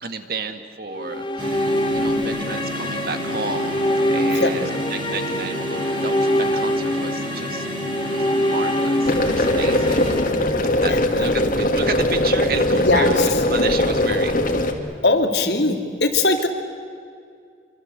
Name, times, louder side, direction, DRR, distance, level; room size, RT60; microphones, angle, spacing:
voice 1, 0.0-3.8 4.1-4.6 4.9-7.7 8.1-10.1 10.8-14.4, right 4 dB, 55° right, 8 dB, 1.9 m, -31 dB
sound 1, 0.9-11.1, left 1 dB, 25° left, 1.3 m, -24 dB
sound 2, 1.4-10.2, right 1 dB, 25° right, 4.3 m, -31 dB
sound 3, 9.0-14.7, left 1 dB, 50° left, 2.5 m, -20 dB
voice 2, 10.9-11.5 12.7-13.4 15.0-16.5, left 3 dB, 70° left, 5 dB, 2.7 m, -21 dB
27.0 x 25.0 x 8.1 m, 2.3 s
head